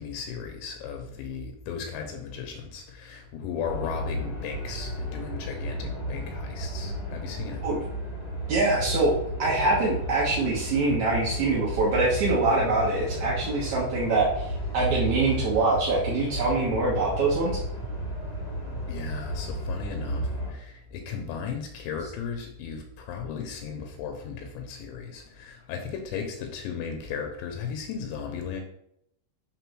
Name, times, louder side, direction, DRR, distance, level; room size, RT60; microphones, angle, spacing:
voice 1, 0.0-7.6 18.9-28.6, left 6 dB, 80° left, 4 dB, 3.0 m, -36 dB
sound 1, 3.6-20.5, equal, 30° left, 1.0 m, -33 dB
voice 2, 8.5-9.1 9.4-17.6, right 3 dB, 70° right, -5 dB, 1.7 m, -24 dB
6.8 x 3.8 x 6.1 m, 0.74 s
omnidirectional pair, 5.4 m